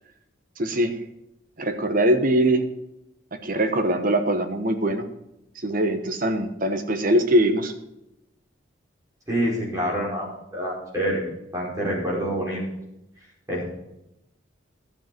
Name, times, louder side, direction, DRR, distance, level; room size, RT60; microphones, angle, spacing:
voice 1, 0.6-1.0 1.6-2.6 3.3-5.1 5.6-7.7, right 1 dB, 45° right, 7 dB, 1.1 m, -22 dB
voice 2, 9.3-11.2 11.5-12.6 13.5-13.6, equal, 15° right, -5 dB, 5.3 m, -26 dB
12.0 x 7.5 x 6.1 m, 0.88 s
head